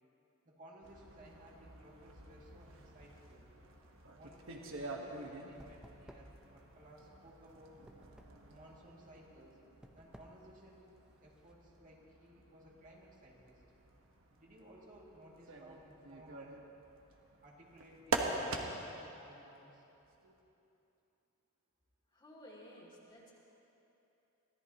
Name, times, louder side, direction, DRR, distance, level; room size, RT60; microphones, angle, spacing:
voice 1, 0.4-3.5 4.1-7.7 8.5-9.6 9.9-10.9 11.2-13.6 14.4-16.6 17.4-19.8, right 1 dB, 40° right, -3 dB, 2.3 m, -58 dB
sound 1, 0.8-19.0 20.0-20.4, right 3 dB, 65° right, 1.3 m, -46 dB
sound 2, 4.0-11.5, equal, 5° right, 0.7 m, -60 dB
voice 2, 22.1-23.4, equal, 25° left, -5 dB, 2.5 m, -55 dB
25.0 x 16.5 x 3.0 m, 3.0 s
head